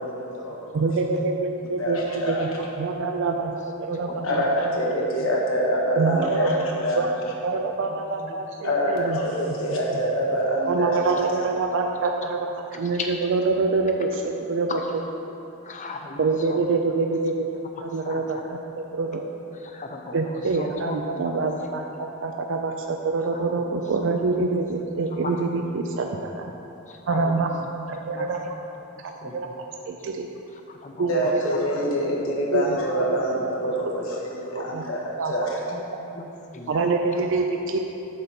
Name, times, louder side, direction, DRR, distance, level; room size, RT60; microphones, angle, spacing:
voice 1, 0.0-0.9 1.8-2.5 4.2-7.1 8.6-11.5 31.1-35.6, equal, 85° left, -3 dB, 1.5 m, -26 dB
voice 2, 0.7-2.5 2.8-4.4 6.0-7.1 7.4-9.2 9.7-9.8 10.7-14.8 16.2-17.5 17.8-19.2 20.1-26.5 27.1-27.5 27.9-28.6 29.0-29.5 29.9-30.3 31.0-31.2 32.5-32.7 34.5-34.8 35.2-35.3 36.7-37.8, right 3 dB, 65° right, 3 dB, 0.4 m, -26 dB
voice 3, 15.6-16.6 18.0-18.4 19.6-21.0 23.3-23.4 25.2-25.3 26.9-27.5 28.1-28.3 28.8-28.9 29.2-29.6 30.7-31.3 34.5-34.7 35.7-35.8 36.1-36.8, left 3 dB, 35° left, 3 dB, 0.7 m, -37 dB
8.6 x 4.0 x 5.9 m, 2.9 s
head